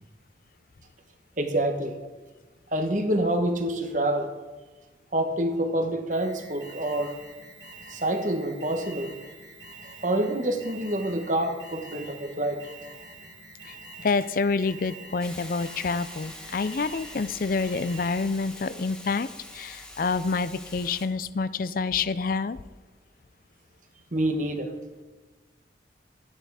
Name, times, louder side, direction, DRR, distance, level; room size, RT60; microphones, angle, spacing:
voice 1, 1.4-2.0 2.7-4.3 5.1-7.2 7.9-9.1 10.0-12.7 24.1-24.7, right 1 dB, 45° right, 5 dB, 1.4 m, -27 dB
Alarm, 6.1-18.5, right 2 dB, 80° right, 3.2 m, -46 dB
voice 2, 13.7-22.6, left 4 dB, 50° left, 16 dB, 0.5 m, -28 dB
Hiss, 15.2-21.1, left 1 dB, 5° left, 1.2 m, -44 dB
13.0 x 10.0 x 4.9 m, 1.2 s
head